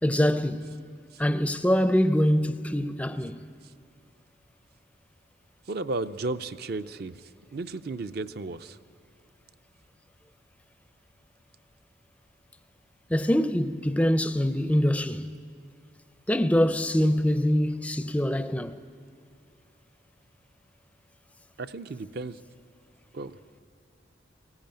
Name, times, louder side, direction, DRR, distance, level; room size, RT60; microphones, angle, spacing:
voice 1, 0.0-0.7 1.2-3.5 13.1-15.3 16.3-18.8, equal, 5° left, 0.4 m, -24 dB
voice 2, 5.7-7.2 7.5-8.8 21.6-22.4 23.1-23.4, right 3 dB, 50° right, 0.5 m, -34 dB
19.5 x 15.5 x 8.9 m
head